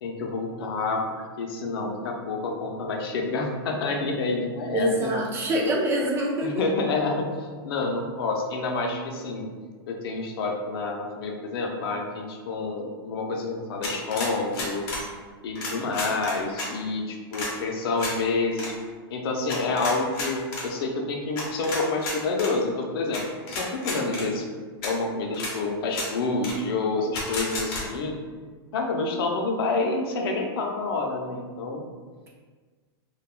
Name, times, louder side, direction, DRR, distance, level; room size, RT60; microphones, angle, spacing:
voice 1, 0.0-5.1 6.4-9.5 9.9-14.9 15.4-18.7 19.1-24.4 24.8-28.2 28.7-31.8, left 3 dB, 65° left, 2 dB, 0.6 m, -28 dB
voice 2, 4.7-6.5, right 1 dB, 20° right, -3 dB, 0.4 m, -25 dB
sound 1, 13.8-15.0 15.5-16.7 17.3-17.5 18.0-18.1 18.5-18.7 19.5-20.6 21.3-22.5 23.1-23.2 23.5-24.2 24.8-24.9 25.3-25.5 25.9-26.1 26.4-26.5 27.1-27.8, left 2 dB, 40° left, 0.8 m, -32 dB
3.4 x 2.3 x 2.4 m, 1.5 s
hypercardioid pair, 135°, 13 cm